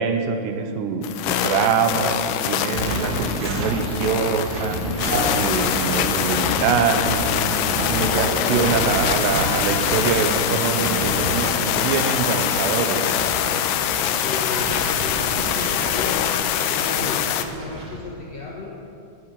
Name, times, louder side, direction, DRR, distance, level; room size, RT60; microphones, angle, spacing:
voice 1, 0.0-2.2 2.5-4.8 5.3-7.4 7.9-13.0, right 6 dB, 85° right, 7 dB, 3.2 m, -24 dB
sound 1, 1.0-17.5, left 10 dB, 85° left, 2.6 m, -24 dB
sound 2, 2.7-18.0, right 1 dB, 40° right, 2.0 m, -29 dB
voice 2, 14.0-18.7, left 3 dB, 60° left, -2 dB, 1.8 m, -35 dB
12.5 x 10.0 x 9.0 m, 2.6 s
omnidirectional pair, 4.8 m